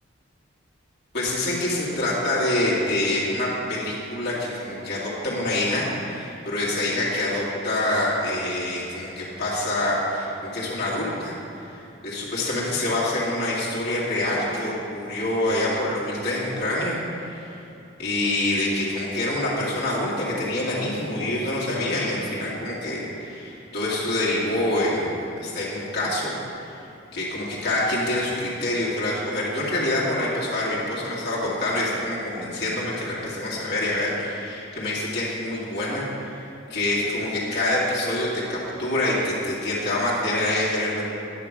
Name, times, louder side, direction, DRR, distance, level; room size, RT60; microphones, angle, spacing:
voice 1, 1.1-11.3 11.6-17.5 18.0-25.1 25.4-26.3 26.7-26.8 27.1-36.4 36.7-41.0, left 1 dB, 55° left, -7 dB, 2.1 m, -26 dB
9.9 x 5.9 x 4.9 m, 2.7 s
head